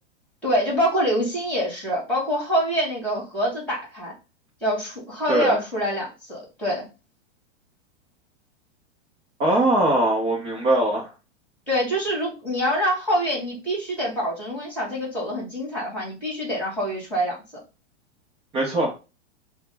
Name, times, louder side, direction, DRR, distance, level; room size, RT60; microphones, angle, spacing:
voice 1, 0.4-4.1 4.6-6.9 11.7-17.4, equal, 5° left, -4 dB, 1.8 m, -25 dB
voice 2, 9.4-11.1 18.5-18.9, right 1 dB, 15° right, -2 dB, 0.5 m, -21 dB
5.3 x 2.0 x 3.3 m, 0.29 s
supercardioid pair, 160°, 35 cm